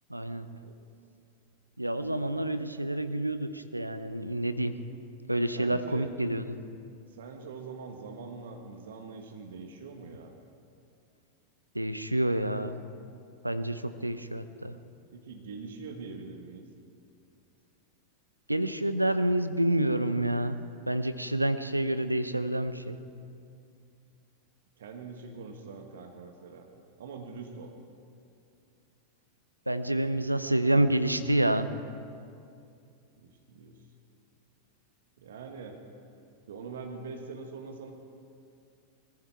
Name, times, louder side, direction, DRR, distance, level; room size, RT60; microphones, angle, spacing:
voice 1, 0.1-0.5 1.8-4.8 5.3-6.6 11.7-12.8 13.4-14.8 18.5-20.6 20.9-23.0 29.7-31.7, right 1 dB, 85° right, 11 dB, 0.7 m, -28 dB
voice 2, 5.5-6.1 7.1-10.3 14.0-14.1 15.1-16.6 24.8-26.7 27.0-27.7 33.2-33.8 35.2-35.8 36.5-37.9, right 4 dB, 60° right, 4 dB, 1.4 m, -43 dB
20.5 x 14.5 x 4.6 m, 2.4 s
figure-of-eight pair, 90°, 0 cm